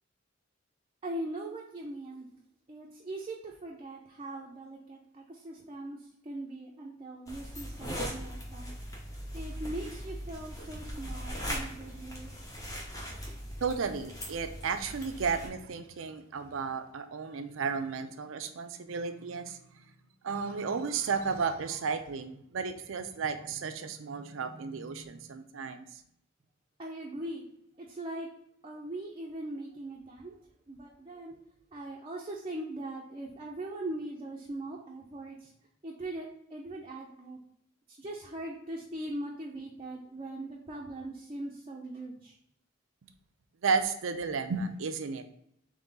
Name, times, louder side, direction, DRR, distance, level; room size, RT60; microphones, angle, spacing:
voice 1, 1.0-2.3 2.7-6.0 6.2-8.7 9.3-12.3 26.8-27.4 27.8-28.3 28.6-30.3 30.7-31.3 31.7-35.5 35.8-37.4 37.9-42.3, right 1 dB, 30° right, -2 dB, 0.5 m, -40 dB
sound 1, 7.3-15.5, equal, 20° left, 0.7 m, -40 dB
voice 2, 13.6-19.9 20.2-26.0 43.6-45.2, right 5 dB, 85° right, 9 dB, 0.5 m, -33 dB
3.7 x 3.3 x 3.9 m, 0.73 s
head